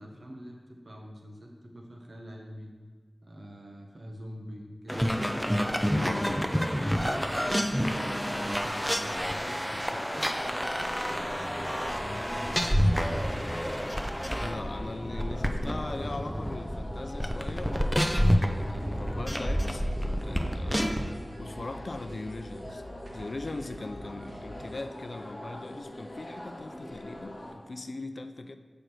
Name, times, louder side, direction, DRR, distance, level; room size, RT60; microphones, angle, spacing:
voice 1, 0.0-2.7 3.2-5.3 6.0-10.3 11.1-13.5, equal, 60° right, 1 dB, 1.1 m, -45 dB
sound 1, 4.9-21.1, equal, ahead, 0.5 m, -29 dB
voice 2, 5.9-6.4 14.4-22.8 23.1-28.6, left 2 dB, 65° left, 8 dB, 0.4 m, -40 dB
sound 2, 7.8-27.5, left 1 dB, 45° left, 1.1 m, -43 dB
sound 3, 19.4-24.7, equal, 80° right, 0.9 m, -47 dB
6.5 x 5.1 x 4.5 m, 1.5 s
wide cardioid pair, 65°, 0 cm